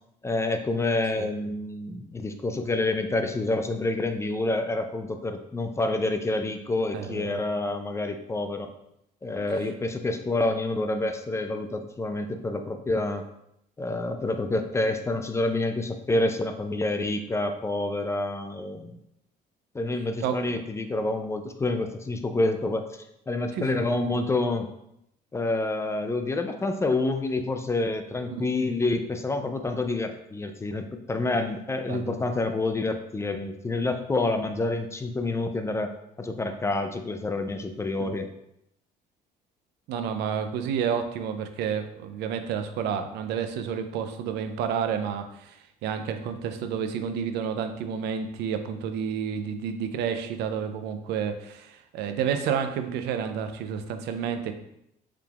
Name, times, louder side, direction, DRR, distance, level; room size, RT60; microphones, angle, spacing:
voice 1, 0.2-8.7 9.2-13.3 13.8-19.0 19.7-22.9 23.3-24.7 25.3-38.3, left 2 dB, 15° left, 7 dB, 0.3 m, -28 dB
voice 2, 6.9-7.4 20.2-20.5 23.5-23.8 28.3-28.5 31.9-32.1 38.0-38.1 39.9-54.5, right 7 dB, 80° right, 8 dB, 0.5 m, -30 dB
4.8 x 3.4 x 2.3 m, 0.78 s
cardioid pair, 110°, 17 cm